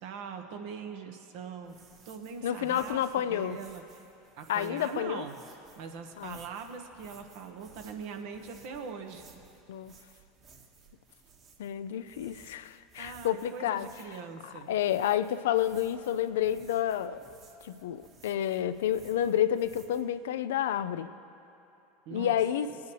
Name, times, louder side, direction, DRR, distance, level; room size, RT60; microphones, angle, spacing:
voice 1, 0.0-1.8 2.0-4.0 4.4-5.4 5.8-9.2 13.0-14.7 22.1-22.3, right 6 dB, 65° right, 5 dB, 1.1 m, -42 dB
sound 1, 1.6-20.0, right 4 dB, 45° right, 1.7 m, -58 dB
voice 2, 2.4-3.6 4.5-5.3 6.2-6.4 9.7-9.9 11.6-13.9 14.4-17.2 17.6-21.1 22.1-22.7, left 10 dB, 80° left, 13 dB, 0.4 m, -30 dB
20.0 x 9.3 x 3.2 m, 2.8 s
hypercardioid pair, 90°, 0 cm